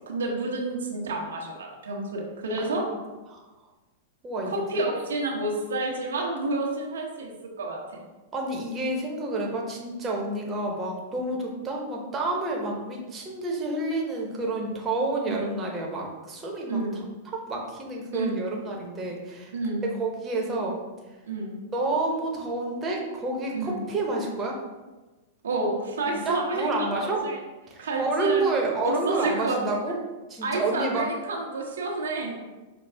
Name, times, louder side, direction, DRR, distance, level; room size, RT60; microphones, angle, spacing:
voice 1, 0.1-2.8 4.5-7.3 7.6-8.0 15.3-15.5 16.7-17.0 18.1-18.4 19.5-19.8 21.2-21.5 23.5-23.8 25.4-27.4 27.8-29.9 30.4-32.4, right 2 dB, 90° right, -1 dB, 0.9 m, -30 dB
voice 2, 4.2-4.9 8.3-17.0 17.3-19.5 19.9-20.8 21.7-24.6 26.1-27.2 27.7-30.0 30.3-31.0, right 2 dB, 20° right, -1 dB, 1.0 m, -29 dB
5.8 x 2.3 x 3.5 m, 1.2 s
hypercardioid pair, 125°, 0 cm